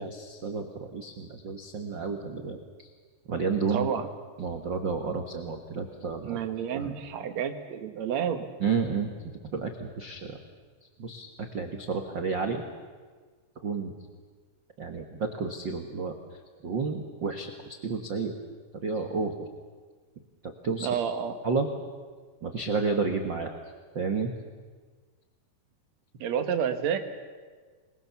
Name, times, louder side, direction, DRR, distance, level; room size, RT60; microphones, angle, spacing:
voice 1, 0.0-2.9 3.3-3.9 4.4-6.4 6.7-6.9 8.6-10.4 11.0-11.3 11.5-12.6 13.6-13.9 14.8-17.5 17.8-18.3 18.7-19.5 20.4-20.9 21.4-21.7 22.4-23.6 23.9-24.3, right 4 dB, 75° right, 4 dB, 1.0 m, -31 dB
voice 2, 3.7-4.1 6.2-8.4 20.8-21.4 26.2-27.0, right 8 dB, 55° right, 7 dB, 2.2 m, -29 dB
27.5 x 21.5 x 7.0 m, 1.5 s
omnidirectional pair, 4.6 m